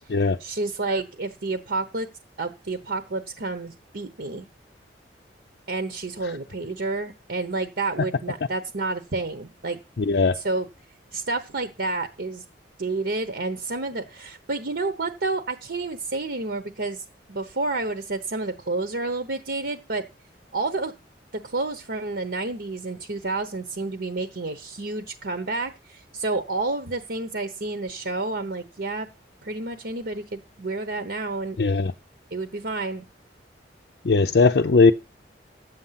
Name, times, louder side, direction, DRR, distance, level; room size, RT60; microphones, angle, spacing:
voice 1, 0.4-2.1 2.4-4.4 5.7-9.8 10.3-10.7 11.1-12.4 12.8-20.0 20.5-20.9 21.4-29.1 29.4-31.6 32.3-33.0, right 3 dB, 65° right, 1.0 m, -30 dB
voice 2, 10.1-10.4 31.6-31.9 34.0-34.9, left 4 dB, 65° left, 0.5 m, -18 dB
10.5 x 8.0 x 5.7 m
head